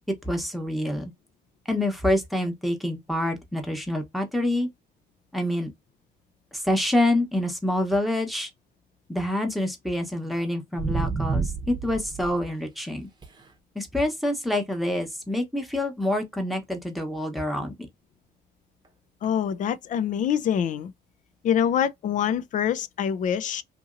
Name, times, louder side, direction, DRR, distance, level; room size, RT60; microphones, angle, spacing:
voice 1, 0.1-1.1 1.7-4.7 5.3-5.7 6.5-8.5 9.1-13.1 13.7-17.7, left 1 dB, ahead, 0.9 m, -26 dB
sound 1, 10.8-12.4 13.2-13.4 19.2-19.3, right 5 dB, 25° right, 0.8 m, -29 dB
voice 2, 19.2-20.9 21.4-23.6, left 8 dB, 50° left, 0.5 m, -25 dB
2.8 x 2.7 x 2.5 m
cardioid pair, 110°, 17 cm